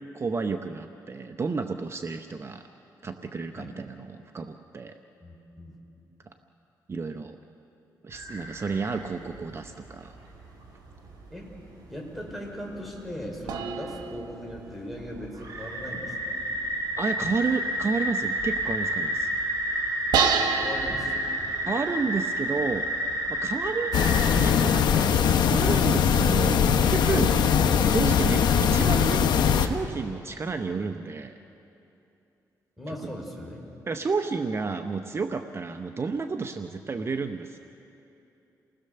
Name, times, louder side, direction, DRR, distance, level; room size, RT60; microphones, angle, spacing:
voice 1, 0.1-2.6 3.0-5.0 6.9-7.4 8.0-10.1 17.0-19.3 21.7-22.9 23.3-24.1 24.4-27.3 27.9-31.4 33.9-37.6, right 4 dB, 35° right, 7 dB, 0.9 m, -31 dB
voice 2, 5.2-5.8 11.3-11.5 11.9-16.4 20.3-21.5 32.8-33.7 34.7-34.8, equal, ahead, 0 dB, 5.3 m, -39 dB
sound 1, 8.1-9.0 9.3-9.4 10.4-10.5 11.5-11.6 12.2-12.3 12.5-12.6 13.9-14.1 14.5-14.6 15.0-24.2, right 1 dB, 60° right, 8.0 m, -30 dB
sound 2, 13.5-15.5 20.1-22.0, right 6 dB, 85° right, 1.7 m, -29 dB
sound 3, 23.9-29.7, left 7 dB, 80° left, 1.2 m, -21 dB
29.5 x 19.0 x 6.8 m, 2.8 s
cardioid pair, 80°, 7 cm